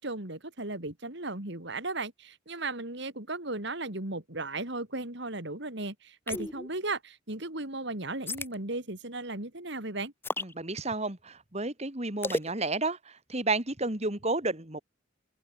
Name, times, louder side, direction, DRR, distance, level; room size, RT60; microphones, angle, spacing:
voice 1, 0.0-10.1, right 2 dB, 55° right, 3.3 m, -36 dB
sound 1, 6.3-6.7 8.3-8.6 10.2-10.5 12.2-12.5, left 2 dB, 10° left, 0.9 m, -32 dB
voice 2, 10.4-14.8, right 2 dB, 30° right, 2.6 m, -31 dB
open air
head